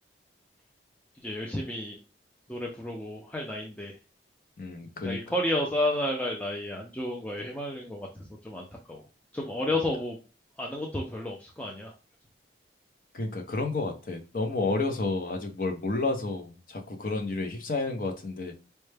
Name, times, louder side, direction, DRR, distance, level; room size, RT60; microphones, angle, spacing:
voice 1, 1.2-2.0 2.5-3.9 5.0-8.1 8.4-9.0 9.3-10.2 10.6-11.9, left 1 dB, 10° left, -1 dB, 0.4 m, -31 dB
voice 2, 4.6-5.2 9.7-9.8 13.1-18.5, left 3 dB, 50° left, 5 dB, 0.7 m, -31 dB
4.4 x 2.1 x 3.3 m, 0.33 s
head